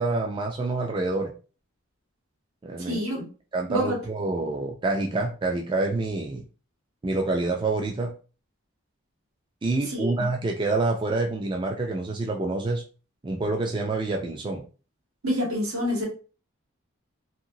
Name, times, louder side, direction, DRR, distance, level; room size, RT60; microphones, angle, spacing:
voice 1, 0.0-1.3 2.6-3.0 3.5-6.4 7.0-8.1 9.6-12.8 13.2-14.6, right 2 dB, 20° right, 1 dB, 0.3 m, -27 dB
voice 2, 2.8-3.2 3.7-4.0 9.9-10.3 15.2-16.0, equal, 85° right, -2 dB, 1.5 m, -27 dB
2.8 x 2.7 x 2.6 m, 0.36 s
head